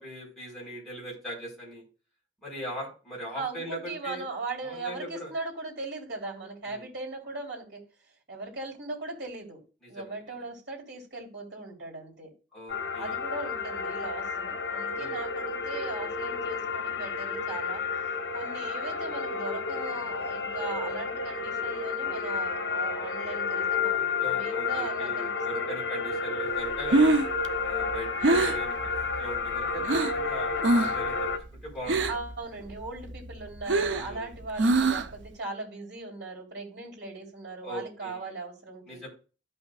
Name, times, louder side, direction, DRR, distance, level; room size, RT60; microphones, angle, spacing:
voice 1, 0.0-1.8 2.4-4.2 4.6-5.3 6.6-6.9 9.9-10.2 12.5-13.2 15.0-15.2 24.2-27.1 27.6-28.7 29.2-29.8 30.1-31.1 31.6-32.2 33.9-34.4 37.6-38.3 38.9-39.1, equal, ahead, -6 dB, 4.5 m, -40 dB
voice 2, 3.3-7.8 8.3-9.6 9.9-12.3 13.0-17.8 18.3-25.7 32.1-39.0, right 3 dB, 65° right, -2 dB, 3.5 m, -39 dB
sound 1, 12.7-31.4, left 4 dB, 90° left, 1.2 m, -31 dB
Breathing, 26.7-30.2 30.6-31.1 31.3-32.4 32.7-35.3, right 2 dB, 85° right, 0.7 m, -25 dB
13.5 x 5.7 x 2.4 m, 0.34 s
head